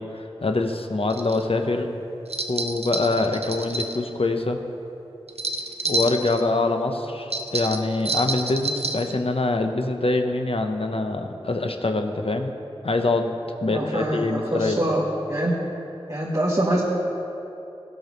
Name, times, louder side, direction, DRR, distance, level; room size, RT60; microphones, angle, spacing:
voice 1, 0.0-1.9 2.5-4.6 5.8-12.5 12.8-13.3 13.6-14.9, left 2 dB, 70° left, 5 dB, 0.9 m, -24 dB
sound 1, 1.1-1.4 2.3-4.0 5.3-6.4 7.3-9.1, right 2 dB, 80° right, 0.7 m, -28 dB
voice 2, 13.7-15.5 16.1-16.8, right 1 dB, 35° right, -6 dB, 1.7 m, -24 dB
16.5 x 6.3 x 5.3 m, 2.9 s
wide cardioid pair, 45°, 10 cm